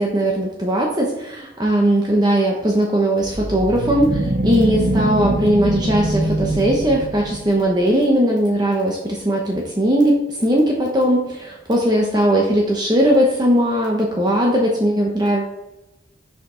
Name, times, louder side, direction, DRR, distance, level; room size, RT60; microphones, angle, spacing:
voice 1, 0.0-15.5, right 1 dB, 20° right, -1 dB, 0.8 m, -18 dB
sound 1, 3.2-7.6, right 1 dB, 50° right, 0.8 m, -23 dB
6.5 x 5.1 x 3.8 m, 0.97 s
head